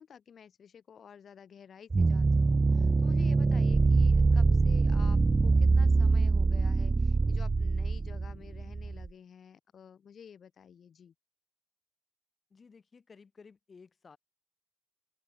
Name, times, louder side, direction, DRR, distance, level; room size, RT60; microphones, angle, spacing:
voice 1, 0.0-11.1, left 7 dB, 55° left, 7.8 m, -51 dB
sound 1, 1.9-9.1, right 3 dB, 25° right, 0.3 m, -24 dB
voice 2, 12.5-14.2, left 5 dB, 35° left, 8.0 m, -55 dB
open air
cardioid pair, 90°, 0 cm